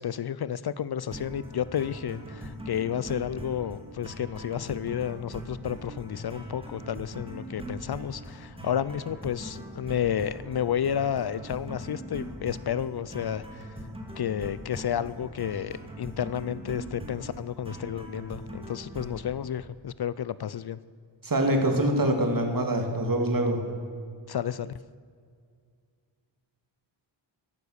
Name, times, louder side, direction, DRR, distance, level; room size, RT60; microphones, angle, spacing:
voice 1, 0.0-13.7 14.2-20.8 24.3-24.7, left 9 dB, 55° left, 17 dB, 0.5 m, -31 dB
sound 1, 1.1-19.3, right 1 dB, 10° right, 2.5 m, -41 dB
voice 2, 21.2-23.6, right 1 dB, 45° right, 4 dB, 2.4 m, -24 dB
13.5 x 12.0 x 6.5 m, 2.2 s
wide cardioid pair, 95°, 46 cm